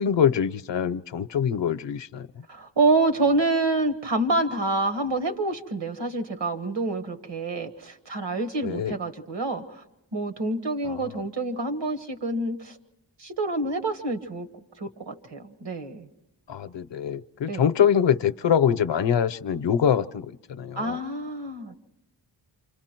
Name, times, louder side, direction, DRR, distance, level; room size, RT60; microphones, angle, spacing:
voice 1, 0.0-2.3 8.6-9.0 10.9-11.0 16.5-21.0, left 8 dB, 80° left, 14 dB, 0.7 m, -24 dB
voice 2, 2.5-9.8 10.1-12.8 13.2-14.5 14.8-16.1 17.5-17.7 20.8-21.8, right 2 dB, 75° right, 7 dB, 1.6 m, -27 dB
28.0 x 26.0 x 4.5 m, 0.93 s
wide cardioid pair, 125°, 43 cm